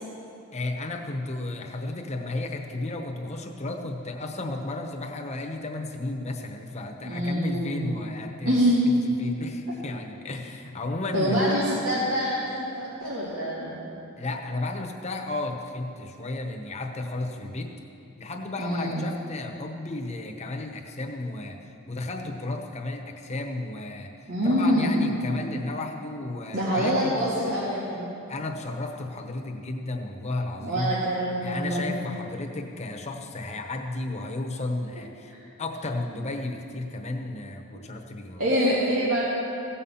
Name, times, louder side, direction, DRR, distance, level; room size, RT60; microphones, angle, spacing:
voice 1, 0.5-8.6 8.9-11.5 14.2-17.7 18.2-27.6 28.3-31.0 31.4-35.3 35.6-38.4, left 2 dB, 30° left, 3 dB, 0.9 m, -33 dB
voice 2, 7.0-7.9 8.4-9.0 11.1-13.8 18.6-19.1 24.3-25.1 26.5-28.2 30.6-31.9 35.3-35.4 38.4-39.2, equal, 90° right, -8 dB, 2.1 m, -25 dB
16.0 x 5.6 x 7.1 m, 2.7 s
head